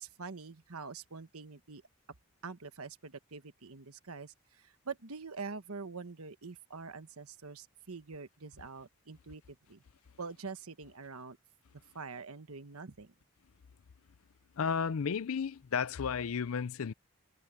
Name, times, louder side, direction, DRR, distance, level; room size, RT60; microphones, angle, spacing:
voice 1, 0.0-1.8 2.4-9.8 10.2-11.4 11.9-13.1, right 4 dB, 85° right, 1.2 m, -45 dB
voice 2, 14.6-16.9, left 6 dB, 75° left, 0.5 m, -33 dB
head